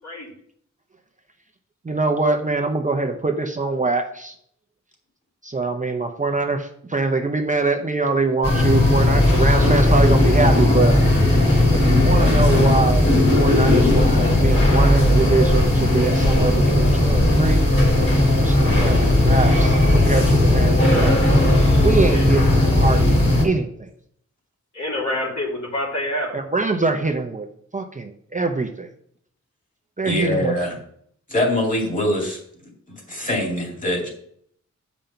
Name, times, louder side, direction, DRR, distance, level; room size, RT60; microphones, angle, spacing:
voice 1, 1.8-4.3 5.4-11.0 11.7-13.1 13.4-17.7 18.4-21.4 21.8-22.5 22.7-23.2 23.4-23.9 26.3-27.5 27.7-28.9 30.0-30.5, right 3 dB, 25° right, 4 dB, 0.7 m, -23 dB
sound 1, 8.4-23.5, left 1 dB, 40° left, 2.8 m, -16 dB
voice 2, 24.7-26.4, left 1 dB, 65° left, -4 dB, 3.3 m, -27 dB
voice 3, 30.0-30.8 31.3-32.4 33.1-34.1, left 1 dB, 25° left, -1 dB, 2.5 m, -23 dB
7.5 x 5.2 x 5.6 m, 0.65 s
wide cardioid pair, 120°, 30 cm